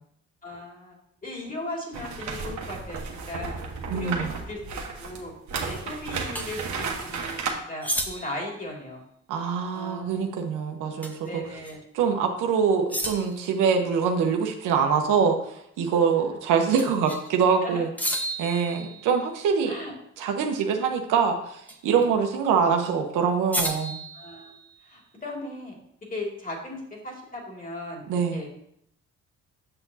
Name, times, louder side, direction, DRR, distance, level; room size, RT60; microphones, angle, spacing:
voice 1, 0.4-3.0 3.3-3.6 3.9-5.3 5.6-9.0 9.7-10.7 11.2-11.8 16.2-16.3 17.6-17.8 19.7-19.9 22.0-22.1 24.1-24.5 24.8-25.8 26.1-28.5, left 1 dB, 25° left, -1 dB, 2.4 m, -37 dB
sound 1, 1.9-7.5, right 5 dB, 70° right, 1.3 m, -33 dB
voice 2, 3.9-4.3 9.3-11.4 11.9-15.4 15.8-17.9 18.4-19.7 20.2-24.0 28.1-28.4, right 6 dB, 90° right, 3 dB, 1.0 m, -24 dB
sound 2, 6.3-6.5 7.8-8.5 11.0-11.3 11.6-11.7 12.9-13.5 16.8-17.3 18.0-19.4 21.7-22.1 23.5-24.9, equal, 5° left, 0.9 m, -32 dB
7.9 x 6.0 x 2.8 m, 0.73 s
cardioid pair, 90°, 30 cm